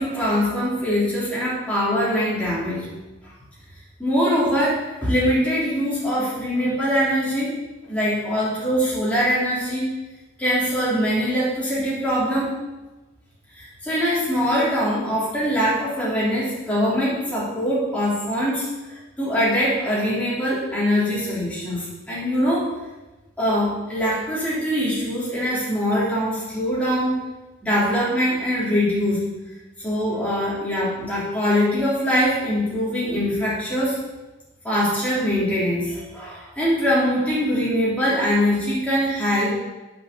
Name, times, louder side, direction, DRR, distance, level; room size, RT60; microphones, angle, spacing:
voice 1, 0.0-2.8 3.2-3.3 4.0-7.5 7.9-9.9 10.4-12.5 13.5-22.7 23.4-27.2 27.6-29.2 29.8-34.0 34.6-39.5, equal, 5° left, -8 dB, 3.4 m, -23 dB
7.9 x 6.4 x 6.9 m, 1.1 s
head